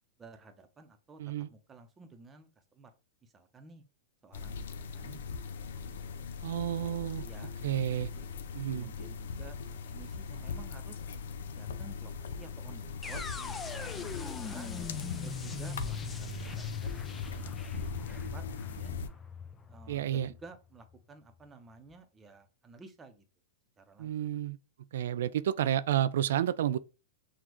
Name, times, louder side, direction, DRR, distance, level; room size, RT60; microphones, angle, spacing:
voice 1, 0.2-1.2 1.5-2.9 3.2-3.8 4.2-5.2 6.4-8.3 8.7-11.0 11.5-14.7 15.2-18.9 19.7-23.2 23.8-24.4, right 3 dB, 20° right, 0.8 m, -53 dB
sound 1, 4.3-19.1, left 5 dB, 75° left, 0.5 m, -40 dB
voice 2, 6.4-7.3 7.6-8.1 8.5-8.9 19.9-20.3 24.0-24.6 24.9-26.8, right 11 dB, 70° right, 0.3 m, -30 dB
sound 2, 13.0-21.0, left 5 dB, 15° left, 0.5 m, -41 dB
6.0 x 2.4 x 2.9 m
hypercardioid pair, 115°, 0 cm